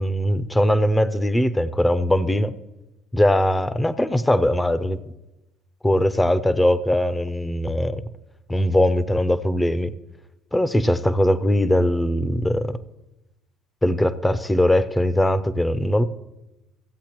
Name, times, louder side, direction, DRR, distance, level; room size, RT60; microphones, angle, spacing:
voice 1, 0.0-2.5 3.1-5.0 5.8-8.0 8.5-9.9 10.5-12.7 13.8-16.0, left 1 dB, 10° left, 14 dB, 0.6 m, -20 dB
15.0 x 8.0 x 3.0 m, 0.98 s
supercardioid pair, 85°, 0 cm